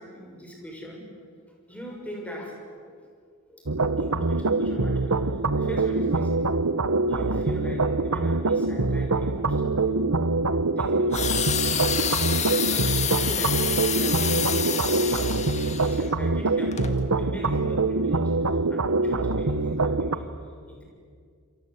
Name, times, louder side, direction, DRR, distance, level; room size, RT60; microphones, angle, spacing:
voice 1, 0.1-1.0 1.7-2.5 2.8-3.0 3.5-3.6 4.0-6.3 7.1-10.0 10.8-11.2 11.8-15.2 15.9-20.2 20.7-20.8, equal, 5° left, 0 dB, 6.4 m, -40 dB
sound 1, 3.7-20.2, right 3 dB, 80° right, 1.1 m, -24 dB
sound 2, 11.1-16.1 16.7-16.9, left 8 dB, 30° left, 1.7 m, -28 dB
27.5 x 24.0 x 8.2 m, 2.1 s
head